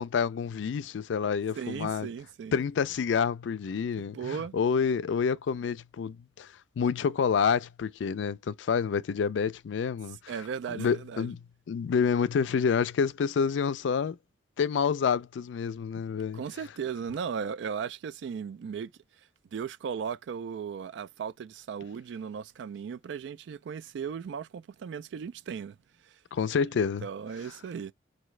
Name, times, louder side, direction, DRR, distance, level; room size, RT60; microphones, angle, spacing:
voice 1, 0.0-2.1 2.5-6.5 6.8-10.2 10.7-11.4 11.7-14.2 14.6-16.4 26.3-27.1, left 6 dB, 80° left, 0.3 m, -28 dB
voice 2, 1.5-2.6 4.1-4.5 10.3-11.3 16.3-18.9 19.5-25.8 26.0-26.2 27.0-27.9, right 7 dB, 75° right, 0.3 m, -36 dB
4.8 x 2.7 x 3.1 m
head